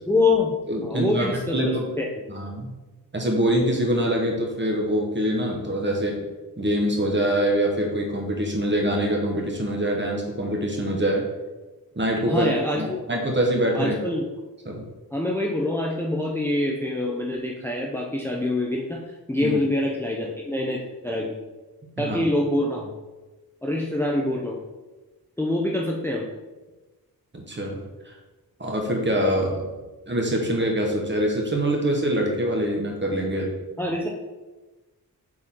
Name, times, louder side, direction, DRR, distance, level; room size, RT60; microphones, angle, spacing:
voice 1, 0.1-0.6 0.8-1.5 2.0-2.1 12.3-13.0 13.7-14.2 15.1-21.3 22.0-22.9 23.6-24.6 25.4-26.3 33.8-34.1, left 2 dB, 5° left, -2 dB, 0.7 m, -25 dB
voice 2, 0.7-1.3 1.5-1.8 2.3-2.7 3.1-6.3 6.6-11.2 11.9-14.0 14.6-14.9 19.4-19.5 22.0-22.2 27.3-27.8 28.0-28.1 28.6-29.7 30.1-33.5, right 1 dB, 30° right, 0 dB, 1.5 m, -24 dB
6.2 x 4.2 x 3.8 m, 1.2 s
wide cardioid pair, 80°, 39 cm